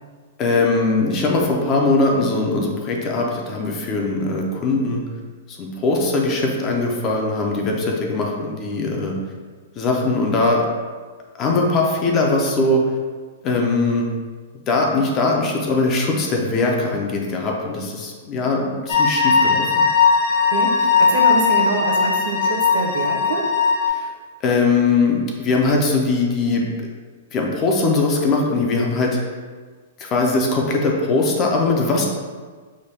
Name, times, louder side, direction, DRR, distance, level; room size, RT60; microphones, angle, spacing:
voice 1, 0.4-5.0 5.5-9.2 9.8-10.6 11.4-12.8 13.4-14.1 14.7-19.7 23.9-24.1 24.4-26.9 27.3-29.4 30.0-32.0, left 3 dB, 20° left, 0 dB, 0.4 m, -20 dB
sound 1, 18.9-23.9, left 5 dB, 50° left, 0.7 m, -18 dB
voice 2, 20.4-23.5, right 3 dB, 65° right, 1 dB, 0.8 m, -25 dB
5.0 x 2.2 x 4.2 m, 1.5 s
hypercardioid pair, 180°, 0 cm